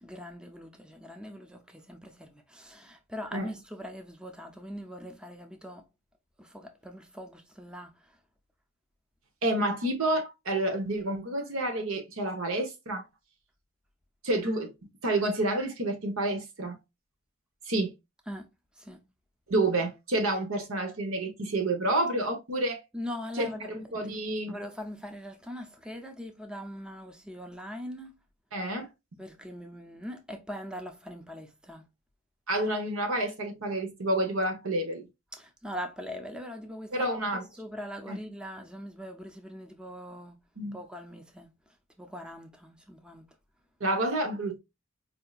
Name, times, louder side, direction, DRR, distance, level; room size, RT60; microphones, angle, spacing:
voice 1, 0.0-5.9 6.4-8.2 18.3-18.5 18.8-19.0 22.9-23.7 24.0-24.1 24.5-28.1 29.2-31.9 35.3-40.4 40.7-41.5 42.0-43.3, equal, 5° right, 0.5 m, -41 dB
voice 2, 9.4-13.0 14.2-14.7 15.0-16.8 17.7-17.9 19.5-22.8 23.4-24.6 28.5-28.9 32.5-35.1 36.9-37.5 38.1-38.2 40.6-40.8 43.8-44.6, right 1 dB, 75° right, 1.0 m, -29 dB
4.4 x 2.8 x 2.3 m
head